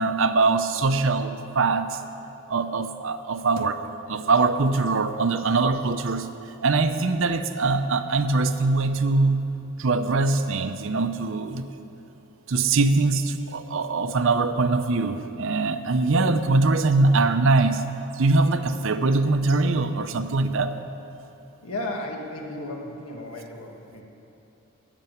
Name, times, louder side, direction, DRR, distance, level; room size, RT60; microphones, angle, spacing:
voice 1, 0.0-1.9 2.5-3.8 4.1-6.3 6.6-9.5 9.8-11.6 12.5-17.8 18.2-20.7, right 3 dB, 60° right, 10 dB, 0.6 m, -22 dB
voice 2, 21.6-24.0, left 1 dB, 90° left, 1 dB, 1.7 m, -34 dB
11.5 x 7.0 x 9.1 m, 3.0 s
head